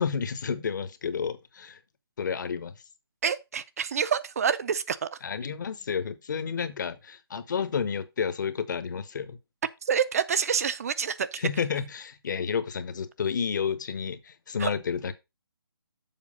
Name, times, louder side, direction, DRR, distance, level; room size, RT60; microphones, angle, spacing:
voice 1, 0.0-1.8 2.2-2.7 5.2-9.4 11.4-15.1, left 6 dB, 50° left, 1.0 m, -30 dB
voice 2, 3.2-5.2 9.8-11.4 14.6-14.7, right 7 dB, 40° right, 0.5 m, -27 dB
7.2 x 4.7 x 5.4 m
hypercardioid pair, 155°, 13 cm